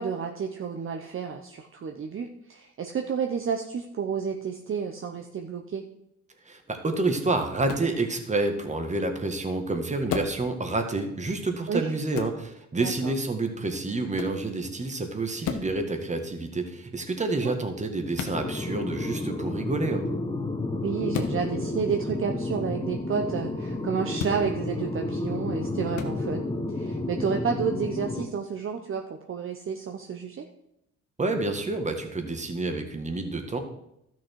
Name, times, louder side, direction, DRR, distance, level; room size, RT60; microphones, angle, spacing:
voice 1, 0.0-5.8 11.7-11.9 12.8-13.1 17.4-17.6 20.8-30.5, right 6 dB, 45° right, 4 dB, 0.9 m, -31 dB
voice 2, 6.5-20.1 31.2-33.6, right 2 dB, 25° right, 5 dB, 1.7 m, -28 dB
sound 1, 7.7-7.9 10.1-10.4 12.1-12.4 14.1-14.4 15.4-15.7 18.1-18.4 21.1-21.4 24.1-24.4 25.9-26.1, left 7 dB, 80° left, 1.2 m, -32 dB
sound 2, 18.3-28.2, left 2 dB, 15° left, 1.3 m, -31 dB
12.5 x 6.2 x 4.6 m, 0.79 s
cardioid pair, 90°, 30 cm